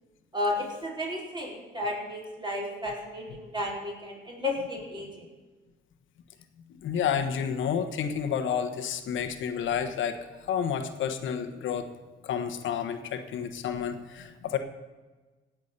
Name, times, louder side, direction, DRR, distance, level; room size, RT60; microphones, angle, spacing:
voice 1, 0.3-5.3, left 1 dB, 25° right, -3 dB, 4.6 m, -33 dB
voice 2, 6.8-11.9 12.2-14.6, left 8 dB, 75° left, 8 dB, 1.3 m, -30 dB
17.5 x 6.1 x 6.8 m, 1.3 s
cardioid pair, 90°, 20 cm